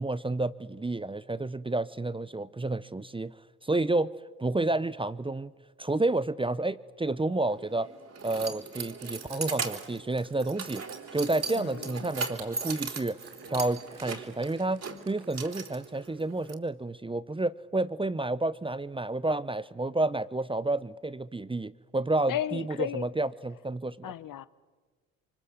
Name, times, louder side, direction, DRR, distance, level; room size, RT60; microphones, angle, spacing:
voice 1, 0.0-3.3 3.6-4.1 4.4-5.5 5.8-7.9 8.2-10.8 11.1-13.2 13.5-24.1, right 2 dB, 15° right, 0.8 m, -30 dB
Keys jangling, 7.5-16.5, right 4 dB, 40° right, 4.0 m, -38 dB
Crushing, 9.0-15.8, right 9 dB, 80° right, 7.5 m, -53 dB
voice 2, 11.5-12.1 22.3-23.1 24.0-24.5, left 10 dB, 50° left, 1.1 m, -34 dB
28.0 x 24.5 x 8.0 m
hypercardioid pair, 60°, 40 cm